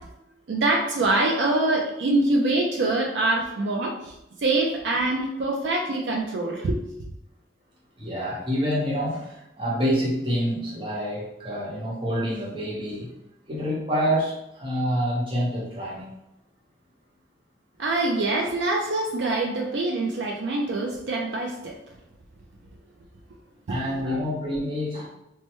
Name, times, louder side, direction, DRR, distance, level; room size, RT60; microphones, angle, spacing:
voice 1, 0.5-4.1 4.4-6.8 17.8-21.8 23.7-24.2, right 2 dB, 70° right, 0 dB, 0.4 m, -24 dB
voice 2, 8.0-13.1 13.5-16.1 23.7-25.1, equal, 30° right, -5 dB, 1.0 m, -27 dB
3.2 x 2.1 x 3.0 m, 0.87 s
head